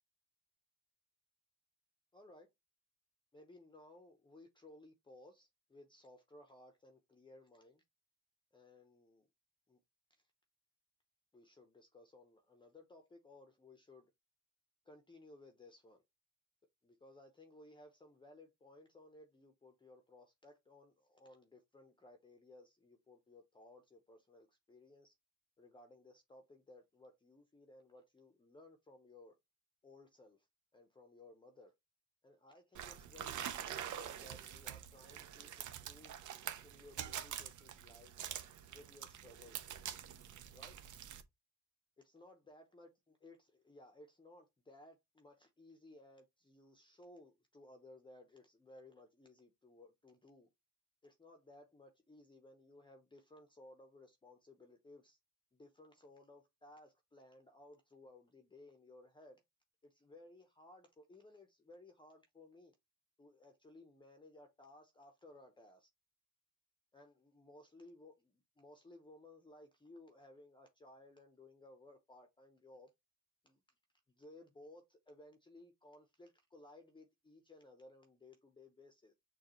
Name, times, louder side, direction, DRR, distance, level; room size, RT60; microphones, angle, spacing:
voice 1, 2.1-2.5 3.3-7.8 8.5-9.3 9.7-9.8 10.1-10.2 11.3-14.1 14.8-16.0 16.8-25.1 25.6-29.4 29.8-30.5 30.7-31.7 32.2-36.2 36.6-38.1 38.7-39.7 40.5-40.8 42.0-42.9 43.2-50.5 51.0-55.2 55.5-59.4 59.8-62.7 63.2-65.9 66.9-72.9 73.4-73.6 74.1-79.1, left 2 dB, 15° left, 0.7 m, -60 dB
sound 1, 32.7-41.2, right 10 dB, 60° right, 0.8 m, -46 dB
6.5 x 2.4 x 3.0 m
cardioid pair, 105°, 34 cm